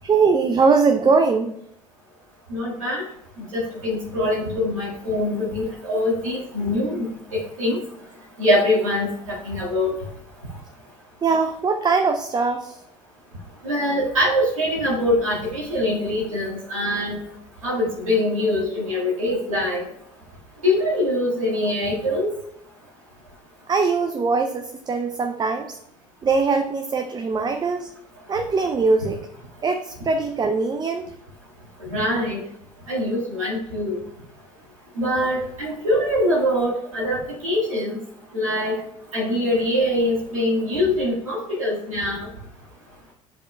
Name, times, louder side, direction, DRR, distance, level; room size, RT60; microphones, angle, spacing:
voice 1, 0.0-1.6 11.2-12.8 23.7-25.8 26.2-27.9 28.3-29.2 29.6-31.0, right 4 dB, 25° right, 6 dB, 0.5 m, -21 dB
voice 2, 2.5-3.0 3.5-7.1 7.3-7.8 8.4-9.9 13.6-17.2 17.6-19.8 20.6-22.3 31.9-32.4 32.9-34.0 35.0-38.0 38.3-38.7 39.1-42.3, left 1 dB, 90° right, -7 dB, 1.8 m, -23 dB
10.0 x 5.1 x 2.2 m, 0.74 s
hypercardioid pair, 65°, 17 cm